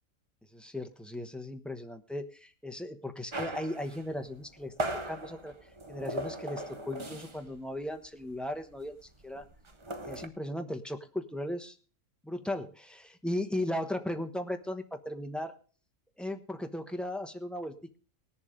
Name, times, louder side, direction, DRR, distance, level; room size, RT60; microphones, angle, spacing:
voice 1, 0.5-4.7 5.0-5.5 5.9-9.0 9.2-9.5 9.9-11.8 12.2-15.6 16.2-18.0, left 1 dB, ahead, 4 dB, 0.9 m, -37 dB
sound 1, 3.3-7.6 7.8-8.1 8.3-10.3, right 1 dB, 25° right, 0.9 m, -38 dB
19.0 x 7.2 x 5.1 m, 0.39 s
omnidirectional pair, 1.4 m